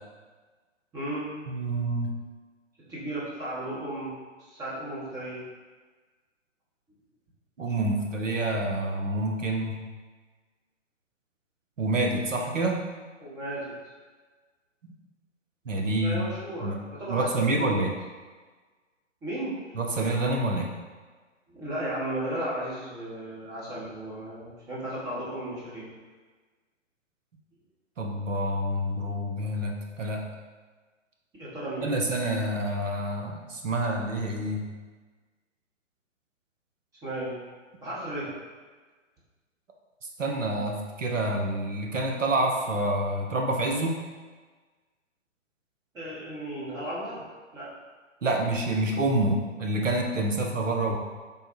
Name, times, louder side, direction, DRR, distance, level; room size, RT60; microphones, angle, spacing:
voice 1, 0.9-1.3 2.9-4.2 4.5-5.4 13.2-13.6 15.8-17.8 19.2-19.6 21.5-25.9 31.4-31.9 37.0-37.4 37.8-38.3 45.9-47.2 47.5-47.7, right 1 dB, 10° right, -8 dB, 0.7 m, -35 dB
voice 2, 1.5-2.1 7.6-9.8 11.8-12.8 14.8-14.9 15.7-16.2 16.6-16.8 17.1-17.9 19.7-20.7 28.0-30.2 31.8-34.6 40.2-44.0 48.2-51.0, right 1 dB, 80° right, 1 dB, 0.8 m, -27 dB
3.5 x 2.2 x 4.3 m, 1.4 s
figure-of-eight pair, 120°, 37 cm